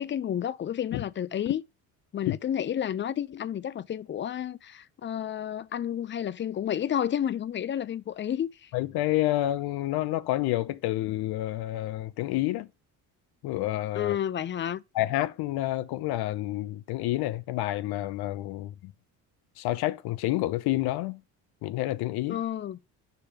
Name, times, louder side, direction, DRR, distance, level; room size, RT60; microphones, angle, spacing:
voice 1, 0.0-1.6 2.1-8.7 14.0-14.8 22.3-22.8, left 10 dB, 30° left, 0.5 m, -31 dB
voice 2, 8.7-12.7 13.4-14.2 14.9-18.9 19.6-21.2 21.6-22.4, left 16 dB, 75° left, 0.7 m, -29 dB
6.8 x 3.3 x 5.7 m
cardioid pair, 95°, 38 cm